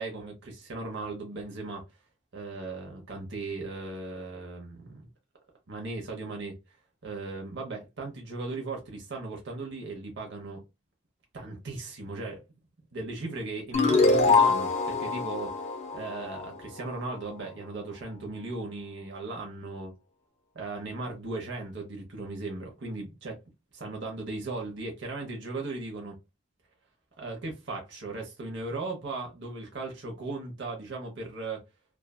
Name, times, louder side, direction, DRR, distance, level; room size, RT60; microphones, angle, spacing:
voice 1, 0.0-1.8 2.3-5.1 5.7-6.5 7.0-10.6 11.3-12.4 12.9-19.9 20.5-23.4 23.7-26.2 27.2-31.6, right 3 dB, 50° right, 0.7 m, -37 dB
sound 1, 13.7-17.0, left 3 dB, 30° left, 0.4 m, -24 dB
2.5 x 2.2 x 2.2 m
head